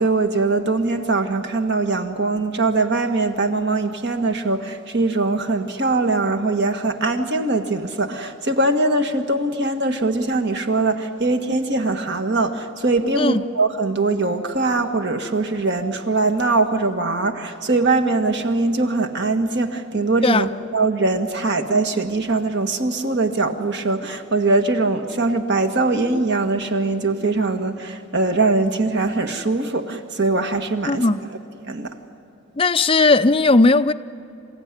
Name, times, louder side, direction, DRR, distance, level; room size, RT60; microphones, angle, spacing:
voice 1, 0.0-31.0 31.7-31.9, right 3 dB, 50° right, 6 dB, 1.5 m, -21 dB
voice 2, 30.9-31.2 32.6-33.9, left 3 dB, 25° left, 12 dB, 0.5 m, -16 dB
28.5 x 16.0 x 9.7 m, 3.0 s
head